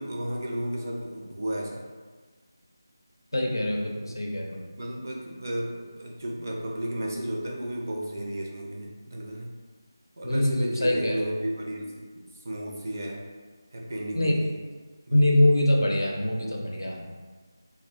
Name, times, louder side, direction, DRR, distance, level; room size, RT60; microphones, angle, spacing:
voice 1, 0.0-1.8 4.7-9.5 10.2-13.2 13.7-14.5 15.1-15.2, right 1 dB, 45° right, -1 dB, 0.4 m, -33 dB
voice 2, 3.3-4.7 10.2-11.3 14.1-14.4 15.1-17.1, left 1 dB, 75° left, 0 dB, 0.5 m, -24 dB
2.4 x 2.1 x 2.6 m, 1.4 s
figure-of-eight pair, 165°, 2 cm